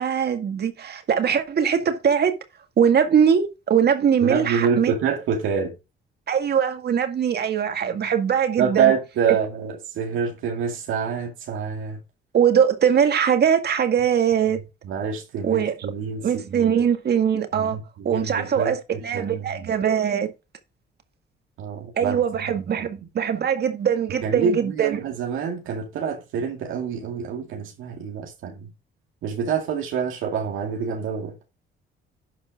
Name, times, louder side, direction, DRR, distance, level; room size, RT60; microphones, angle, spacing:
voice 1, 0.0-2.4 2.8-4.9 6.3-8.9 12.3-14.6 15.4-15.8 16.2-17.8 18.0-20.3 22.0-25.0, right 8 dB, 55° right, 2.0 m, -21 dB
voice 2, 4.2-5.7 8.6-12.0 14.8-16.7 17.5-19.7 21.6-22.2 22.6-22.9 24.2-28.7 29.2-31.4, right 6 dB, 85° right, 2.2 m, -27 dB
11.5 x 4.5 x 5.2 m
cardioid pair, 90°, 20 cm